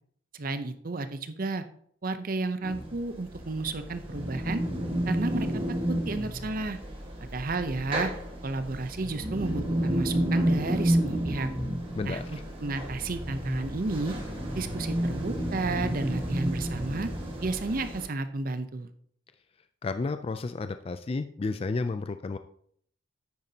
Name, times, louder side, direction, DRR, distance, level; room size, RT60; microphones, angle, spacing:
voice 1, 0.3-1.6 2.0-4.6 5.1-5.5 5.9-6.8 7.2-8.1 8.4-11.5 12.0-14.1 14.6-17.1 17.4-18.9, right 3 dB, 45° right, 10 dB, 0.6 m, -32 dB
sound 1, 2.6-18.0, right 1 dB, 30° right, 1.5 m, -31 dB
voice 2, 11.9-12.4 19.8-22.4, left 3 dB, 30° left, 9 dB, 0.3 m, -32 dB
9.4 x 9.1 x 2.8 m, 0.64 s
head